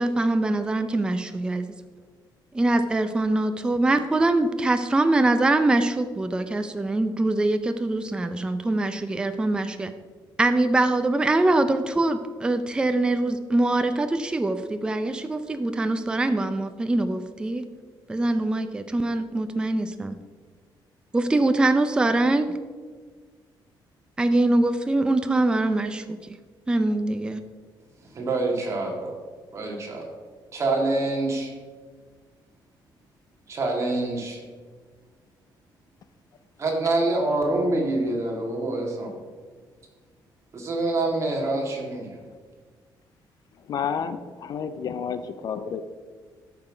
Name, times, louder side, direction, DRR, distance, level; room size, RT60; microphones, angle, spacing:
voice 1, 0.0-1.7 2.5-9.9 10.4-17.6 18.1-20.1 21.1-22.5 24.2-26.2 26.7-27.4, right 2 dB, 10° right, 8 dB, 0.4 m, -23 dB
voice 2, 28.1-29.1 29.5-30.0 30.5-31.5 33.5-34.4 36.6-39.1 40.5-42.2, right 2 dB, 35° right, 0 dB, 2.1 m, -26 dB
voice 3, 43.6-45.8, left 7 dB, 50° left, 11 dB, 0.5 m, -31 dB
13.0 x 5.8 x 5.0 m, 1.5 s
cardioid pair, 160°, 8 cm